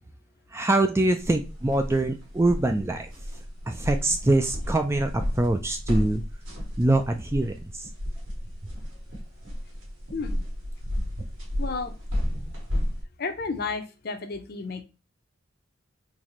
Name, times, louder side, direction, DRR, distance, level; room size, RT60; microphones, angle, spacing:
voice 1, 0.5-3.1 3.7-6.2 6.8-7.9, right 2 dB, 15° right, 6 dB, 0.3 m, -24 dB
sound 1, 1.2-13.0, equal, 70° right, 2.0 m, -33 dB
voice 2, 10.1-10.4 11.6-11.9 13.2-14.8, left 4 dB, 50° left, 7 dB, 0.6 m, -32 dB
4.1 x 3.0 x 3.0 m, 0.30 s
head